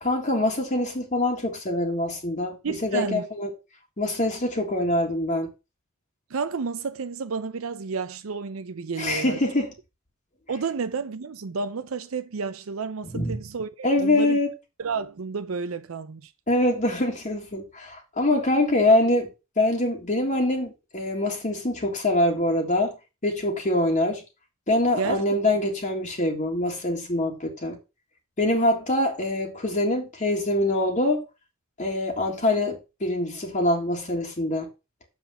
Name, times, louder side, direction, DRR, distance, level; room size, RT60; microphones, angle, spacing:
voice 1, 0.0-2.6 2.8-3.5 4.0-5.5 9.0-9.7 13.1-13.4 13.8-14.5 16.5-19.3 19.6-22.9 23.2-24.2 24.7-27.8 28.4-31.2 31.8-34.7, left 1 dB, 40° left, 1.8 m, -24 dB
voice 2, 2.6-3.2 6.3-9.4 10.5-14.4 14.8-16.3 25.0-25.2, right 5 dB, 90° right, 0.6 m, -31 dB
6.9 x 6.0 x 5.5 m
head